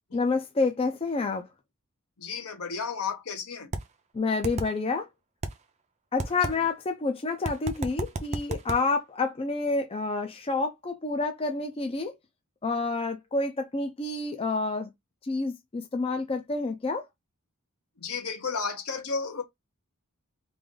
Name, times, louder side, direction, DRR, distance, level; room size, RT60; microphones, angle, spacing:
voice 1, 0.1-1.4 4.1-5.1 6.1-12.1 12.6-14.9 15.3-17.1, left 3 dB, 25° left, 0.5 m, -28 dB
voice 2, 2.2-3.7 18.0-19.4, left 5 dB, 70° left, 1.0 m, -33 dB
sound 1, 3.7-3.8 4.4-4.7 5.4-5.5 6.2-6.5 7.5-8.8, right 2 dB, 30° right, 0.5 m, -31 dB
3.3 x 2.5 x 3.7 m
head